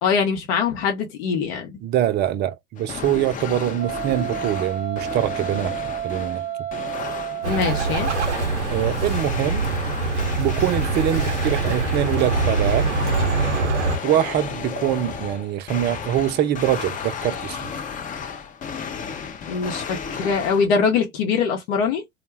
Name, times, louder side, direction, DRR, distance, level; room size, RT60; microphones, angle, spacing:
voice 1, 0.0-1.8 7.5-8.1 19.5-22.0, left 5 dB, 60° left, 0.7 m, -23 dB
voice 2, 1.8-5.7 6.0-6.4 8.7-9.6 10.4-12.9 14.0-17.6, right 11 dB, 30° right, 0.4 m, -23 dB
sound 1, 2.8-20.7, left 6 dB, 25° left, 0.5 m, -33 dB
Wind instrument woodwind instrument, 3.8-8.5, right 11 dB, 85° left, 1.2 m, -31 dB
Bird, 7.4-14.0, right 3 dB, 85° right, 0.5 m, -24 dB
2.4 x 2.1 x 3.1 m
figure-of-eight pair, 70°, 34 cm